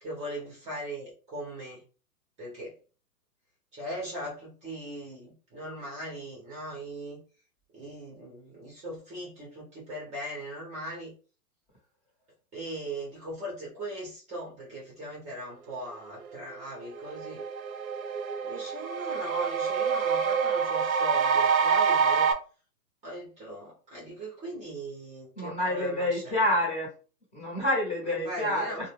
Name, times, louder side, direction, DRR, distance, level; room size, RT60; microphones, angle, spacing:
voice 1, 0.0-1.8 2.4-2.7 3.7-7.2 7.7-11.1 12.5-17.4 18.4-22.3 23.0-26.4 28.0-28.8, right 1 dB, 15° right, -4 dB, 0.8 m, -39 dB
sound 1, 16.6-16.7 17.0-22.3, right 6 dB, 60° right, 0.6 m, -26 dB
voice 2, 25.4-26.9 27.3-28.9, left 1 dB, 15° left, -3 dB, 1.0 m, -28 dB
2.4 x 2.2 x 3.3 m, 0.36 s
hypercardioid pair, 135°, 48 cm